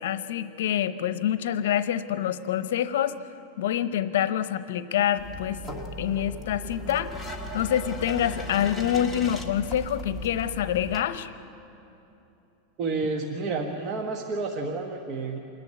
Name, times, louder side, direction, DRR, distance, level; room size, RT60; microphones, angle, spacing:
voice 1, 0.0-3.1 3.6-5.6 6.0-7.2 7.5-11.3, left 10 dB, 85° left, 13 dB, 0.8 m, -26 dB
sound 1, 5.2-11.0, left 1 dB, ahead, 1.5 m, -37 dB
voice 2, 12.8-15.4, right 3 dB, 35° right, 2 dB, 1.2 m, -30 dB
26.5 x 10.5 x 9.5 m, 2.9 s
supercardioid pair, 155°, 0 cm